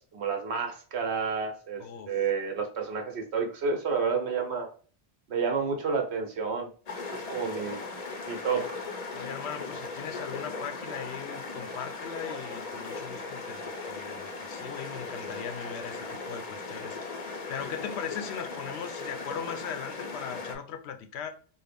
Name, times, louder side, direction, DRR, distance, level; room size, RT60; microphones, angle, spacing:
voice 1, 0.1-4.7 5.3-6.7 7.1-7.8 8.2-8.8, right 5 dB, 75° right, 1.1 m, -30 dB
voice 2, 1.8-2.2 8.6-8.7 9.1-21.3, left 8 dB, 80° left, 0.8 m, -39 dB
sound 1, 6.9-20.5, left 3 dB, 45° left, 0.6 m, -38 dB
3.6 x 2.1 x 3.3 m
omnidirectional pair, 1.1 m